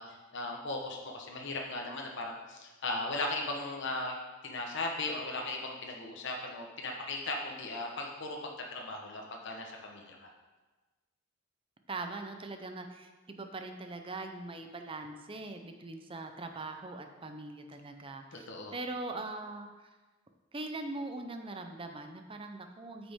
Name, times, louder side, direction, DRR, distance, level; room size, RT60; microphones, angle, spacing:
voice 1, 0.0-4.2 4.4-10.3 18.3-18.7, left 2 dB, 65° left, 0 dB, 1.1 m, -37 dB
voice 2, 11.9-19.9 20.5-23.1, right 2 dB, 25° right, 6 dB, 0.6 m, -41 dB
8.4 x 5.9 x 3.6 m, 1.2 s
head